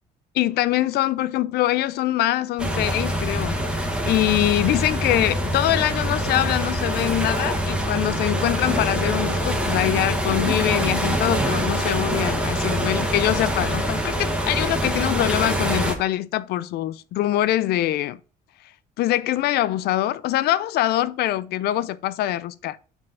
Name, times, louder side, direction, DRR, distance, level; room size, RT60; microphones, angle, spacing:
voice 1, 0.3-3.6 4.1-18.2 19.0-22.8, left 14 dB, 70° left, 0.5 m, -23 dB
sound 1, 2.6-15.9, equal, 5° right, 1.4 m, -24 dB
5.3 x 4.5 x 5.3 m
cardioid pair, 110°, 17 cm